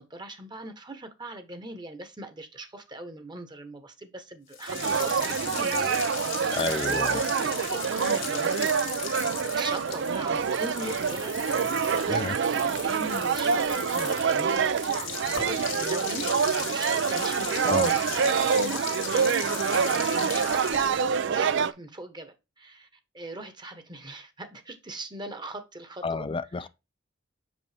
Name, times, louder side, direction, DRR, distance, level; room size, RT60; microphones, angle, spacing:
voice 1, 0.0-8.5 9.5-11.4 11.7-20.9 21.3-22.9 23.1-26.3 26.6-26.7, right 1 dB, 25° right, 1.1 m, -40 dB
sound 1, 4.5-21.3, left 8 dB, 80° left, 2.0 m, -37 dB
sound 2, 4.7-21.7, right 6 dB, 65° right, 0.5 m, -26 dB
voice 2, 6.5-7.2 12.1-12.4 17.7-17.9 26.0-26.7, left 4 dB, 25° left, 0.5 m, -30 dB
6.5 x 5.2 x 3.4 m
head